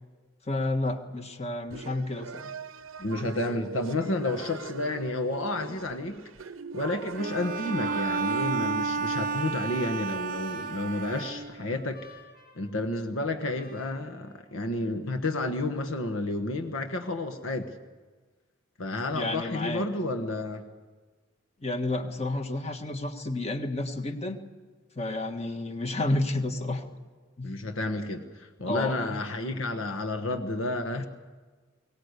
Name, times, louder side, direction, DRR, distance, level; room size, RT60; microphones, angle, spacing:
voice 1, 0.4-2.5 19.1-19.9 21.6-24.4 24.9-26.8 27.4-27.6 28.7-29.2, left 2 dB, 30° left, 6 dB, 1.6 m, -30 dB
sound 1, 1.7-8.8, right 5 dB, 85° right, 0.7 m, -42 dB
voice 2, 3.0-6.2 6.7-12.0 12.6-17.7 18.8-20.6 27.4-31.1, left 2 dB, 90° left, 5 dB, 1.4 m, -31 dB
Bowed string instrument, 7.2-11.8, right 4 dB, 45° right, 0.6 m, -31 dB
Trumpet, 8.7-15.0, equal, 55° left, 5.9 m, -54 dB
22.0 x 18.0 x 8.2 m, 1.4 s
head